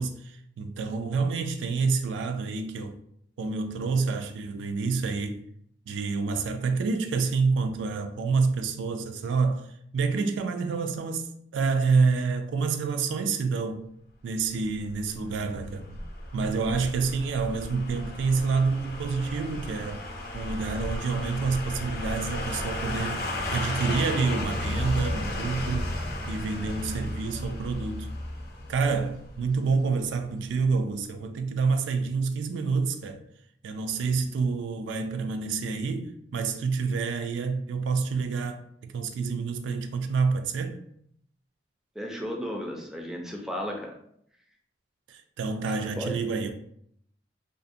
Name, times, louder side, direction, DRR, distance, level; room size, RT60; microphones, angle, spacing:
voice 1, 0.0-3.0 3.4-5.4 5.9-9.7 9.9-13.9 14.2-16.0 16.3-20.0 20.3-23.2 23.5-25.9 26.3-28.1 28.7-33.2 33.6-40.8 45.1-46.5, right 4 dB, 80° right, 0.3 m, -28 dB
sound 1, 14.9-29.8 30.1-30.2, left 1 dB, 55° left, 0.5 m, -34 dB
voice 2, 42.0-43.9 46.0-46.1, equal, 5° right, 0.4 m, -34 dB
2.6 x 2.1 x 2.5 m
head